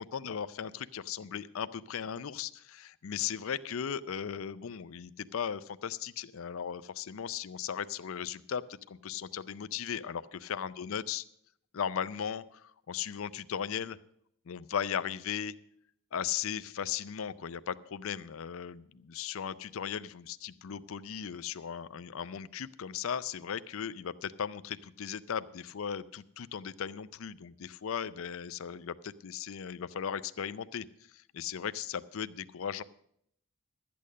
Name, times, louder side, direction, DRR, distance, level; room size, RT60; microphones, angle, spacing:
voice 1, 0.0-11.2 11.7-14.0 14.5-15.5 16.1-30.9 31.1-32.8, left 8 dB, 65° left, 14 dB, 0.4 m, -37 dB
12.5 x 8.5 x 6.4 m, 0.70 s
head